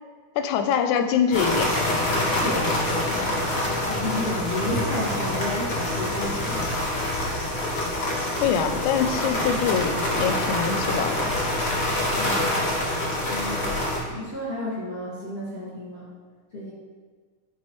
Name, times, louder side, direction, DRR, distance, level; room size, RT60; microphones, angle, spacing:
voice 1, 0.4-1.7 8.4-11.3, left 7 dB, 90° left, 8 dB, 2.0 m, -24 dB
sound 1, 1.3-14.0, left 1 dB, 65° left, 0.6 m, -26 dB
voice 2, 2.3-2.7 3.1-3.3 3.9-6.6 12.1-12.7 13.3-13.6 14.0-16.1 16.5-16.7, left 1 dB, 30° left, -9 dB, 1.3 m, -32 dB
8.4 x 4.6 x 3.1 m, 1.5 s
omnidirectional pair, 3.3 m